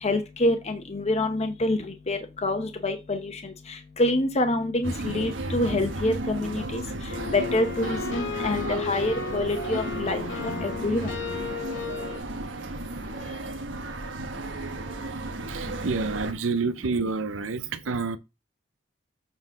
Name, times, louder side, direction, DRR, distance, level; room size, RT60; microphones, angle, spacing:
voice 1, 0.0-1.8 2.1-3.3 4.0-6.8 7.3-11.1, left 2 dB, 35° left, 0.9 m, -26 dB
sound 1, 4.8-16.3, right 2 dB, 70° right, 1.2 m, -34 dB
sound 2, 7.1-12.2, left 5 dB, 85° left, 2.3 m, -34 dB
voice 2, 15.5-18.2, right 4 dB, 90° right, 0.7 m, -28 dB
7.6 x 4.0 x 5.0 m
head